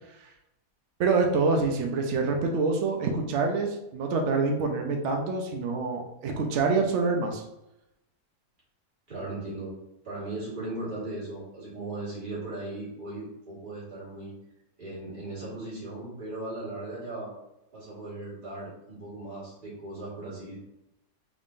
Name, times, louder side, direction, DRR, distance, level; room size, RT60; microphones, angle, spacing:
voice 1, 1.0-7.4, right 4 dB, 90° right, 2 dB, 0.6 m, -26 dB
voice 2, 9.1-9.7 10.0-14.3 14.8-17.3 17.7-20.6, right 2 dB, 30° right, -7 dB, 1.6 m, -37 dB
3.6 x 3.6 x 2.5 m, 0.89 s
omnidirectional pair, 1.8 m